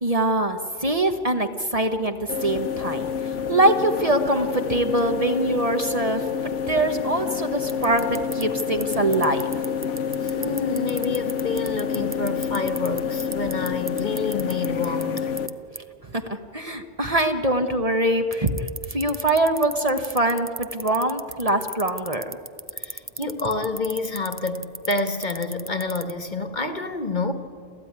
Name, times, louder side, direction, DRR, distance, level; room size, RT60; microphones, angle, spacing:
voice 1, 0.0-3.1 3.5-9.5 16.1-22.4, right 1 dB, 30° right, 1.2 m, -23 dB
sound 1, 2.3-15.5, left 7 dB, 80° left, 1.4 m, -28 dB
sound 2, 7.7-15.5 15.8-15.9 18.3-26.1, right 2 dB, 15° right, 0.5 m, -33 dB
voice 2, 10.2-15.3 22.7-27.3, left 3 dB, 40° left, 1.4 m, -28 dB
29.5 x 14.5 x 9.6 m
omnidirectional pair, 1.2 m